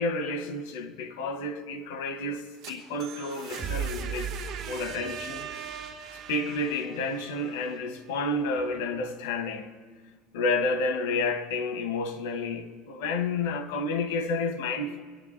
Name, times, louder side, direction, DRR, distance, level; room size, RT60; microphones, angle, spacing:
voice 1, 0.0-4.3 4.7-5.5 6.3-9.7 10.3-15.0, left 3 dB, 85° left, 1.6 m, -30 dB
sound 1, 2.4-8.2, right 6 dB, 55° right, 3.1 m, -38 dB
25.0 x 11.0 x 4.3 m
cardioid pair, 145°, 0 cm